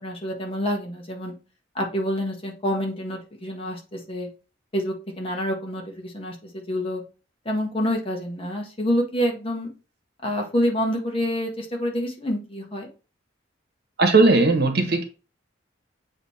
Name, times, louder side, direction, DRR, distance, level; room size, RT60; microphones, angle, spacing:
voice 1, 0.0-1.3 1.7-4.3 4.7-7.0 7.4-9.7 10.2-12.9, equal, 30° left, 1 dB, 1.5 m, -27 dB
voice 2, 14.0-15.0, right 3 dB, 55° right, 5 dB, 1.3 m, -17 dB
7.9 x 3.1 x 4.3 m, 0.33 s
head